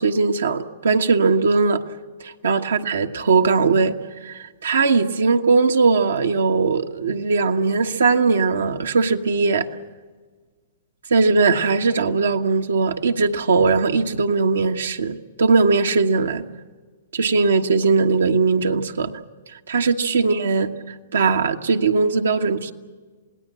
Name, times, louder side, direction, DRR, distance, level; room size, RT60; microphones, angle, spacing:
voice 1, 0.0-1.8 2.2-3.9 4.2-9.7 11.1-16.4 17.1-19.1 19.7-22.7, right 4 dB, 80° right, 5 dB, 1.3 m, -19 dB
27.5 x 18.5 x 7.6 m, 1.4 s
hypercardioid pair, 125°, 0 cm